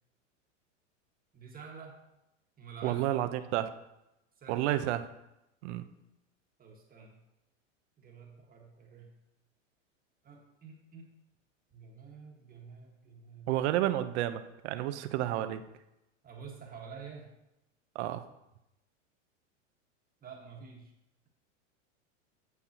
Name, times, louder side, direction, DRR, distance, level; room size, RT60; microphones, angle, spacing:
voice 1, 1.3-2.0 2.6-3.7 4.4-4.7 6.6-7.2 8.0-9.1 10.2-11.1 11.7-13.5 16.2-17.3 20.2-20.9, right 5 dB, 20° right, 0 dB, 1.6 m, -49 dB
voice 2, 2.8-3.7 4.5-5.0 5.6-5.9 13.5-15.6 17.9-18.2, right 13 dB, 60° right, 10 dB, 0.8 m, -30 dB
9.3 x 8.0 x 2.9 m, 0.88 s
hypercardioid pair, 120°, 39 cm